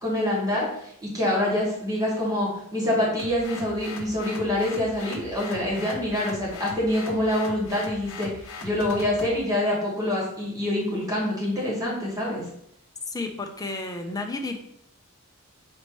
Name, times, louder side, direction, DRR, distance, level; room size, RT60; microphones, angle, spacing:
voice 1, 0.0-0.7 1.0-8.3 8.6-12.4, left 1 dB, 15° right, -5 dB, 1.5 m, -26 dB
sound 1, 3.2-9.4, left 3 dB, 65° left, 0.7 m, -40 dB
voice 2, 13.1-14.6, left 3 dB, 15° left, 4 dB, 0.5 m, -32 dB
5.2 x 3.0 x 3.0 m, 0.73 s
head